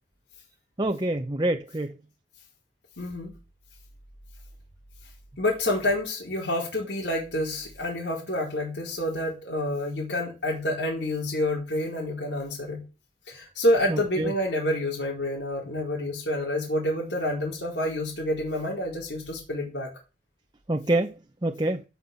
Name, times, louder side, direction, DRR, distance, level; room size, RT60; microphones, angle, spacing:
voice 1, 0.8-1.9 13.9-14.3 20.7-21.1 21.4-21.8, right 1 dB, 25° right, 0.9 m, -26 dB
voice 2, 3.0-3.3 5.4-12.8 13.3-19.9, left 1 dB, 75° left, 4.6 m, -28 dB
17.0 x 5.9 x 7.1 m
head